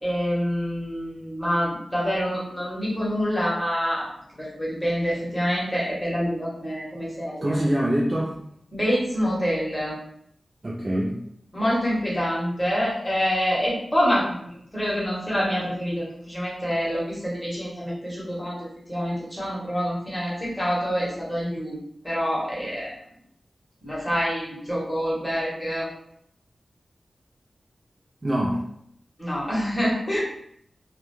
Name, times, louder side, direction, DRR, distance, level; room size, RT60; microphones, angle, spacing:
voice 1, 0.0-4.0 4.4-7.5 8.7-9.9 11.5-21.8 22.0-22.9 23.8-25.9 29.2-30.2, equal, 15° left, -6 dB, 1.1 m, -26 dB
voice 2, 7.4-8.4 10.6-11.2 28.2-28.6, equal, 35° right, -5 dB, 0.4 m, -24 dB
2.3 x 2.1 x 3.0 m, 0.71 s
wide cardioid pair, 90°, 0 cm